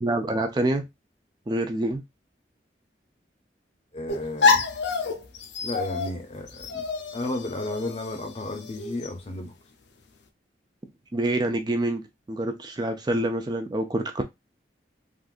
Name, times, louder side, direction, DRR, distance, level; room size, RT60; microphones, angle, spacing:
voice 1, 0.0-0.8 1.5-2.0 11.1-12.0 12.3-14.2, right 1 dB, 25° right, 0.4 m, -26 dB
voice 2, 3.9-4.6 5.6-6.8 7.1-9.5, left 2 dB, 35° left, 0.6 m, -33 dB
sound 1, 4.1-9.1, left 5 dB, 80° left, 0.6 m, -27 dB
3.6 x 2.6 x 2.4 m
head